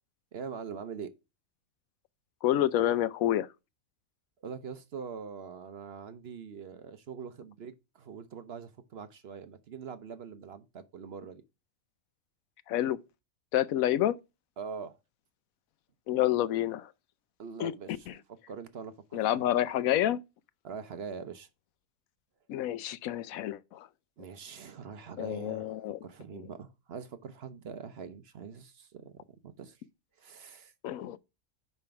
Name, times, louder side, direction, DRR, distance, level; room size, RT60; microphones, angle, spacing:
voice 1, 0.3-1.1 4.4-11.4 14.6-15.0 17.4-18.1 18.5-19.4 20.6-21.5 24.2-29.2 29.4-29.8 30.2-30.7, right 6 dB, 55° right, 0.9 m, -43 dB
voice 2, 2.4-3.5 12.7-13.0 13.5-14.2 16.1-16.9 17.6-18.1 19.1-20.2 22.5-23.9 25.2-26.0 26.3-26.5 30.8-31.2, left 12 dB, 85° left, 1.0 m, -28 dB
5.6 x 5.2 x 5.7 m
omnidirectional pair, 1.4 m